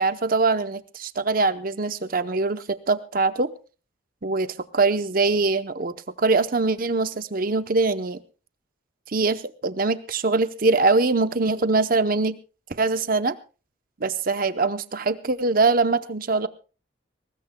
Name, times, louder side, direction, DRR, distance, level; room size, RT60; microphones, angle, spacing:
voice 1, 0.0-3.5 4.2-8.2 9.1-12.4 12.7-13.4 14.0-16.5, right 3 dB, 45° right, 12 dB, 0.7 m, -23 dB
23.0 x 19.5 x 2.2 m, 0.34 s
head